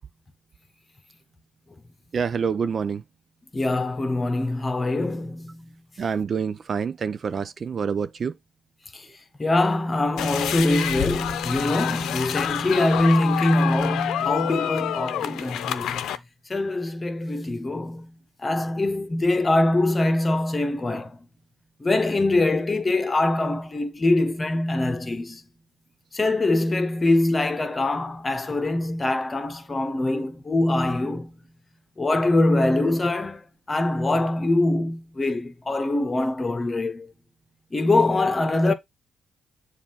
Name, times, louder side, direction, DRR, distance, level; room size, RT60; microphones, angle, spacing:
voice 1, 2.1-3.0 6.0-8.3, right 6 dB, 45° right, 0.5 m, -27 dB
voice 2, 3.5-5.6 8.9-9.0 9.4-16.0 16.5-18.1 18.4-21.2 21.8-25.4 26.1-31.3 32.0-33.4 33.7-37.1 37.7-38.7, left 2 dB, 25° left, 1.2 m, -23 dB
sound 1, 10.2-16.2, left 10 dB, 80° left, 0.7 m, -28 dB
7.2 x 2.7 x 5.7 m
cardioid pair, 90°, 0 cm